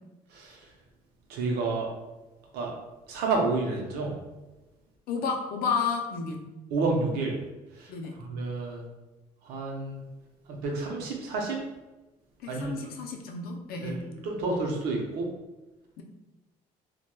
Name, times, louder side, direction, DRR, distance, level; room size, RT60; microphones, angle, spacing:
voice 1, 0.3-0.7 1.3-1.9 2.5-2.7 3.1-4.1 6.7-7.4 7.7-8.8 9.4-10.0 10.5-11.6 12.5-12.7 13.8-15.3, right 3 dB, 75° right, 0 dB, 0.6 m, -30 dB
voice 2, 5.1-6.4 7.9-8.2 12.4-14.0 16.0-16.1, left 5 dB, 65° left, 3 dB, 0.5 m, -31 dB
2.9 x 2.2 x 2.2 m, 1.1 s
supercardioid pair, 65°, 16 cm